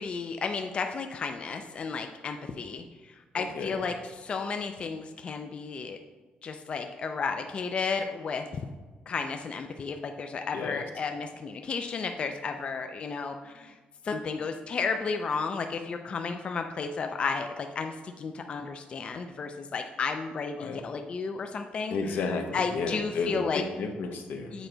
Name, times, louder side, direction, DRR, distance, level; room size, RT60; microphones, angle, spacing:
voice 1, 0.0-6.0 6.4-8.5 9.1-13.8 14.0-22.2 22.5-23.6 24.5-24.7, left 5 dB, 35° left, 5 dB, 0.4 m, -33 dB
voice 2, 3.3-3.8 10.5-10.8 20.6-20.8 21.9-24.6, left 4 dB, 80° left, 5 dB, 0.8 m, -32 dB
8.0 x 4.5 x 3.8 m, 1.3 s
cardioid pair, 155°, 3 cm